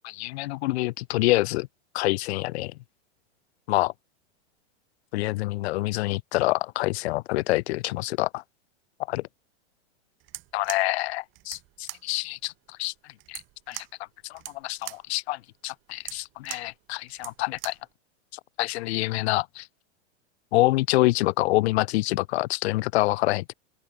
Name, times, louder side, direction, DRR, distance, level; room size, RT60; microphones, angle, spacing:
voice 1, 0.0-1.7 1.9-2.7 3.7-3.9 5.1-8.4 9.1-9.2 10.5-12.5 12.8-12.9 13.3-13.4 13.7-13.8 14.3-17.7 18.6-19.7 20.5-23.5, left 19 dB, 65° left, 0.5 m, -26 dB
sound 1, 10.2-17.9, right 20 dB, 35° right, 1.3 m, -43 dB
open air
supercardioid pair, 140°, 35 cm